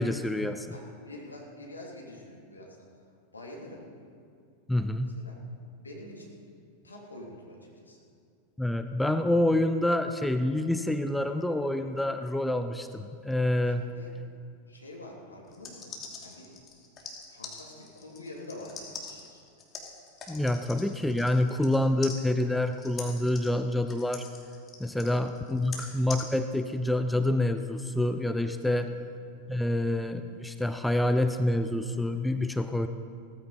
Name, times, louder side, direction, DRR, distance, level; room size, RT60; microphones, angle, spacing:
voice 1, 0.0-0.7 4.7-5.1 8.6-13.8 20.3-24.3 24.8-28.9 29.5-32.9, left 1 dB, 5° left, 9 dB, 0.6 m, -27 dB
voice 2, 0.7-2.8 3.3-3.9 5.0-5.4 5.7-6.4 6.8-8.0 13.6-14.1 14.7-15.9 16.2-16.5 17.3-19.4 24.8-25.2 28.6-28.9 32.7-32.9, left 1 dB, 80° left, -2 dB, 3.1 m, -46 dB
sound 1, 15.5-21.8 22.0-26.2, left 5 dB, 25° left, 2.8 m, -43 dB
17.5 x 14.5 x 4.3 m, 2.3 s
figure-of-eight pair, 90°, 0 cm